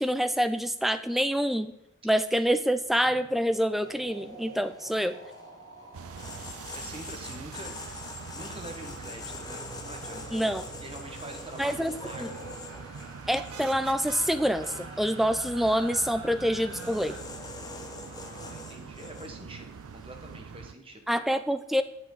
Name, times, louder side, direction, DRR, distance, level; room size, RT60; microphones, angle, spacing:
voice 1, 0.0-1.7 2.0-5.2 10.3-10.6 11.6-11.9 12.2-12.3 13.3-17.1 21.1-21.8, equal, ahead, 10 dB, 0.3 m, -26 dB
sound 1, 2.3-2.5 2.8-17.2, right 2 dB, 55° right, 1.5 m, -48 dB
sound 2, 3.8-20.3, left 2 dB, 20° left, 0.8 m, -45 dB
sound 3, 5.9-20.7, right 6 dB, 85° right, 0.4 m, -44 dB
voice 2, 6.7-7.7 8.1-10.4 10.8-12.5 17.9-21.1, right 1 dB, 25° right, 3 dB, 1.2 m, -45 dB
8.4 x 7.1 x 3.9 m, 0.84 s
head